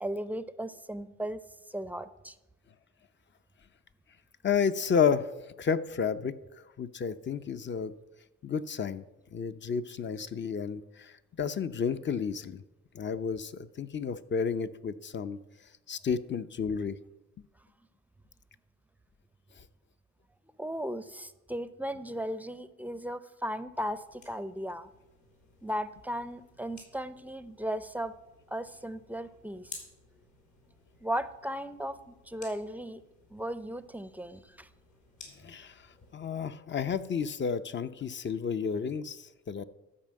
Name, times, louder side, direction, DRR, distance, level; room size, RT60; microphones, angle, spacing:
voice 1, 0.0-1.4 1.7-2.4 20.6-24.9 25.6-28.1 28.5-29.8 31.0-33.0 33.3-34.7, equal, 5° right, 13 dB, 0.6 m, -36 dB
voice 2, 4.4-7.9 8.4-9.0 9.3-12.6 12.9-15.4 15.9-17.0 35.4-35.9 36.1-39.6, left 6 dB, 40° left, 12 dB, 0.7 m, -31 dB
sound 1, 23.7-36.1, left 4 dB, 70° left, 4.1 m, -55 dB
12.5 x 5.2 x 7.6 m, 1.0 s
cardioid pair, 90°, 30 cm